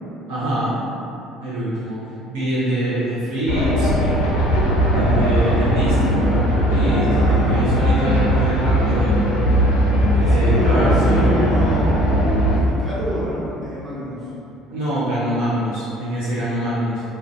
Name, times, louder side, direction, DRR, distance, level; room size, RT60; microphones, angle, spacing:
voice 1, 0.3-0.8 1.4-2.0 2.3-3.9 4.9-9.2 10.2-11.3 14.7-17.0, right 1 dB, 85° right, -10 dB, 0.5 m, -24 dB
sound 1, 3.5-12.6, equal, 90° left, 0.4 m, -18 dB
voice 2, 7.1-7.6 10.1-12.1 12.5-14.3, equal, ahead, -12 dB, 1.2 m, -27 dB
2.5 x 2.2 x 2.4 m, 2.7 s
hypercardioid pair, 70°, 0 cm